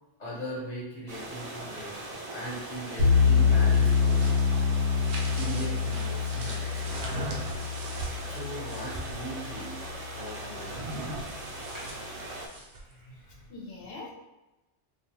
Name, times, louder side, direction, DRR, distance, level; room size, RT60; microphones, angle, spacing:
voice 1, 0.2-4.4 5.3-7.1 8.2-9.7 10.1-11.2 11.7-11.9, right 1 dB, 40° left, -8 dB, 1.0 m, -39 dB
sound 1, 1.1-12.5, right 2 dB, 60° right, 0.4 m, -40 dB
sound 2, 3.0-10.1, left 5 dB, 90° left, 1.1 m, -26 dB
sound 3, 3.6-9.2 10.6-12.9, right 2 dB, 75° right, 0.8 m, -40 dB
voice 2, 12.9-14.1, left 2 dB, 70° left, -2 dB, 0.9 m, -44 dB
2.5 x 2.3 x 3.0 m, 1.0 s
omnidirectional pair, 1.1 m